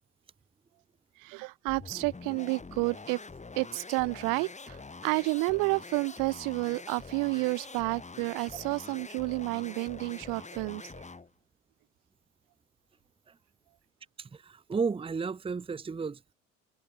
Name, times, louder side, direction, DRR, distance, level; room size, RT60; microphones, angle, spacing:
voice 1, 1.2-3.2 3.5-4.8 5.0-10.8, right 32 dB, 55° right, 1.4 m, -30 dB
sound 1, 1.7-11.3, left 4 dB, 20° left, 7.2 m, -45 dB
voice 2, 14.2-16.2, right 5 dB, 15° right, 1.0 m, -33 dB
figure-of-eight pair, 60°, 38 cm